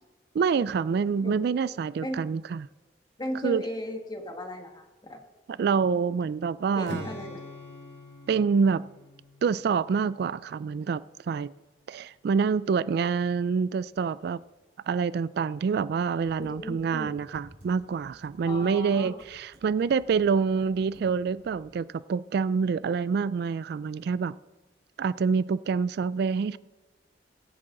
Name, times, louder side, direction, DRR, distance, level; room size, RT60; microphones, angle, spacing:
voice 1, 0.3-2.7 3.4-3.6 5.5-7.1 8.3-8.8 9.4-11.5 11.9-14.4 14.9-24.4 25.0-26.6, right 5 dB, 65° right, 0.3 m, -26 dB
voice 2, 3.2-5.2 6.7-7.4 16.4-17.1 18.4-19.2, equal, 25° left, 1.7 m, -36 dB
Strum, 6.8-11.0, left 2 dB, 75° left, 2.2 m, -44 dB
Computer keyboard, 15.7-21.8, equal, 40° right, 3.6 m, -56 dB
22.5 x 8.6 x 3.8 m
head